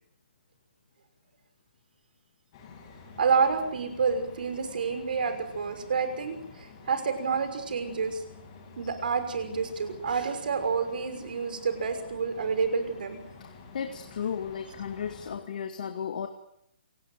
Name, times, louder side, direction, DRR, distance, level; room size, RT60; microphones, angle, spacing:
sound 1, 2.5-15.3, left 4 dB, 25° left, 7.2 m, -49 dB
voice 1, 3.2-8.2 8.8-13.2, right 5 dB, 55° right, 9 dB, 6.0 m, -29 dB
voice 2, 13.4-16.3, left 7 dB, 50° left, 7 dB, 2.1 m, -34 dB
27.5 x 19.0 x 9.3 m, 0.77 s
hypercardioid pair, 175°, 6 cm